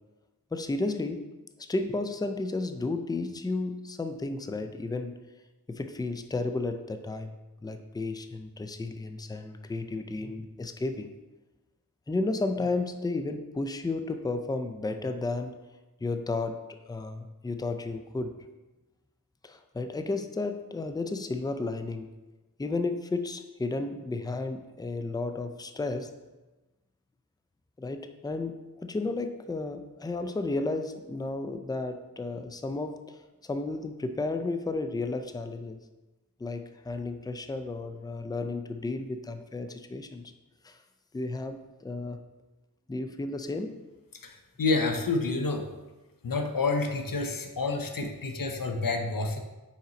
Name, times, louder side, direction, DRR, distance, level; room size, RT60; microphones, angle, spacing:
voice 1, 0.5-1.3 1.6-5.2 5.7-11.1 12.1-15.6 16.0-18.4 19.4-22.1 22.6-26.1 27.8-35.8 36.4-40.3 40.6-40.8 41.1-42.2 42.9-43.8, left 3 dB, 10° left, 8 dB, 0.4 m, -33 dB
voice 2, 44.2-45.7 46.2-49.4, left 3 dB, 65° left, 5 dB, 0.8 m, -29 dB
5.6 x 4.4 x 3.9 m, 1.1 s
wide cardioid pair, 55°, 37 cm